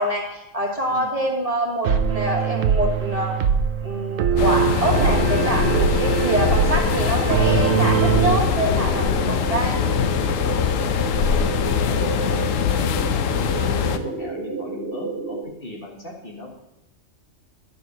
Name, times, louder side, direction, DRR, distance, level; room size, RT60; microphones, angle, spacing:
voice 1, 0.0-3.4 3.8-9.8 11.7-11.8, right 1 dB, 30° right, -1 dB, 1.4 m, -25 dB
sound 1, 1.8-8.4, right 8 dB, 90° right, 1.1 m, -22 dB
sound 2, 4.4-14.0, left 8 dB, 85° left, 1.0 m, -22 dB
sound 3, 4.9-15.4, right 4 dB, 15° right, 1.7 m, -30 dB
voice 2, 11.3-16.5, left 2 dB, 45° left, 0 dB, 1.8 m, -37 dB
11.0 x 4.7 x 6.3 m, 0.92 s
omnidirectional pair, 1.3 m